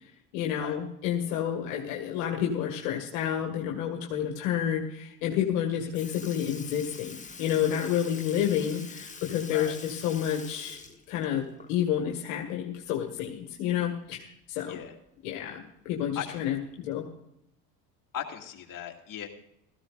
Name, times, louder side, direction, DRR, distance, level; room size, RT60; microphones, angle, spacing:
voice 1, 0.3-10.8 11.1-14.8 15.2-17.1, left 9 dB, 65° left, 1 dB, 2.0 m, -30 dB
Sink (filling or washing) / Liquid, 5.5-5.6 5.9-12.0 12.4-12.5 14.0-14.1 15.1-15.2 16.0-16.2 17.0-17.1, left 4 dB, 15° left, 1.4 m, -45 dB
voice 2, 16.1-16.5 18.1-19.3, left 9 dB, 40° left, 1 dB, 2.6 m, -38 dB
17.0 x 15.0 x 2.6 m, 0.78 s
hypercardioid pair, 75°, 49 cm